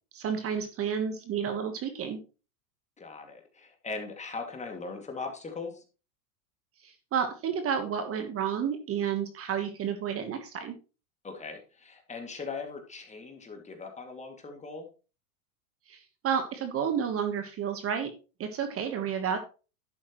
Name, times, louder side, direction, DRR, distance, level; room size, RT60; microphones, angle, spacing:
voice 1, 0.1-2.2 6.8-10.7 15.9-18.1 18.4-19.4, right 7 dB, 30° right, 7 dB, 1.4 m, -31 dB
voice 2, 3.0-5.8 11.2-14.9, left 4 dB, 15° left, 4 dB, 2.4 m, -40 dB
11.0 x 8.3 x 3.1 m, 0.33 s
supercardioid pair, 125°, 44 cm